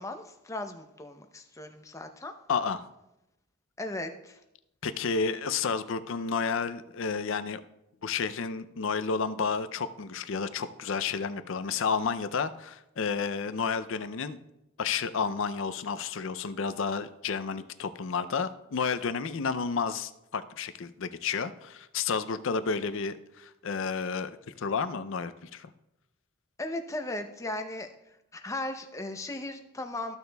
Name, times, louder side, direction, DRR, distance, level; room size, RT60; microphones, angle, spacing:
voice 1, 0.0-2.3 3.8-4.4 26.6-27.9 28.3-30.2, left 2 dB, 15° left, 6 dB, 0.5 m, -37 dB
voice 2, 2.5-2.9 4.8-7.6 8.0-14.4 14.8-25.7, left 5 dB, 60° left, 12 dB, 0.5 m, -31 dB
14.0 x 6.5 x 2.3 m, 0.88 s
head